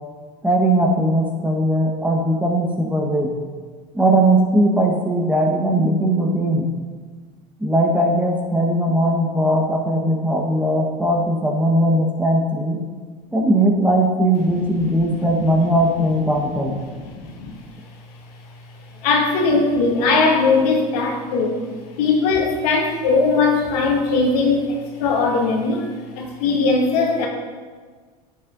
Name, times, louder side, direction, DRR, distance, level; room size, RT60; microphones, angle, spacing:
voice 1, 0.4-3.3 3.9-6.7 7.6-12.8 13.3-16.7, right 1 dB, 5° right, 0 dB, 1.3 m, -19 dB
voice 2, 14.7-15.7 16.4-16.5 16.9-17.5 18.4-18.5 18.9-21.6 21.9-27.3, left 3 dB, 75° left, 0 dB, 1.7 m, -20 dB
10.5 x 7.4 x 2.6 m, 1.5 s
hypercardioid pair, 90°, 20 cm